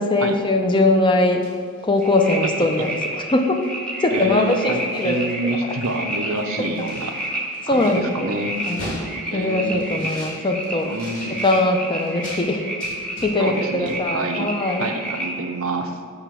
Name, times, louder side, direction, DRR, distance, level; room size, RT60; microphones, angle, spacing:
voice 1, 0.0-1.4 1.8-3.6 4.0-5.6 7.6-8.3 8.7-9.0 9.3-10.9 11.3-12.7 13.2-14.9, left 2 dB, 20° left, 4 dB, 0.5 m, -21 dB
sound 1, 1.2-3.2 3.6-3.8 4.1-5.3 5.6-12.4 12.8-13.6 13.9-14.0, equal, 40° left, 1.9 m, -41 dB
sound 2, 2.0-15.4, right 1 dB, 5° left, 0.9 m, -31 dB
voice 2, 4.1-7.1 7.7-8.5 9.3-10.1 10.8-11.4 13.4-14.5 14.8-16.0, right 2 dB, 75° right, 5 dB, 0.6 m, -27 dB
8.0 x 3.3 x 6.0 m, 2.1 s
head